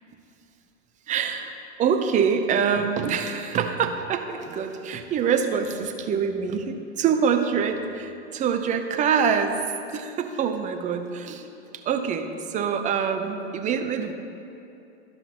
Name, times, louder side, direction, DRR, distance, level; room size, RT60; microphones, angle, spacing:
voice 1, 1.1-1.5 1.8-9.6 9.9-11.5 11.7-14.1, right 6 dB, 20° right, 6 dB, 0.5 m, -25 dB
12.0 x 5.7 x 4.2 m, 2.8 s
hypercardioid pair, 105°, 35 cm